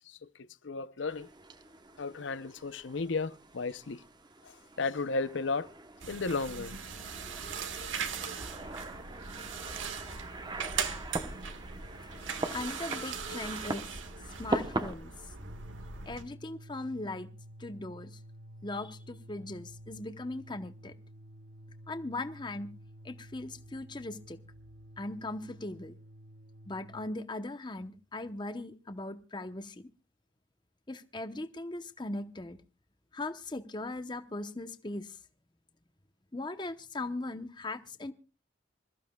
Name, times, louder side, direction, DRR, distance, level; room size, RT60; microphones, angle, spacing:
voice 1, 0.0-1.3 2.0-4.0 4.4-5.7 6.0-6.8, left 4 dB, 70° left, 0.7 m, -34 dB
sound 1, 1.1-14.9, right 2 dB, 20° right, 0.9 m, -41 dB
sound 2, 6.0-16.2, right 6 dB, 85° right, 1.6 m, -40 dB
voice 2, 12.4-13.9 14.4-15.3 16.0-17.3 17.6-18.2 18.6-20.9 21.9-22.7 23.0-24.4 25.0-25.9 26.7-29.9 30.9-32.6 33.1-35.2 36.3-38.1, left 2 dB, 25° left, 0.9 m, -39 dB
sound 3, 15.3-27.2, equal, 55° right, 1.1 m, -51 dB
26.5 x 14.5 x 2.3 m
head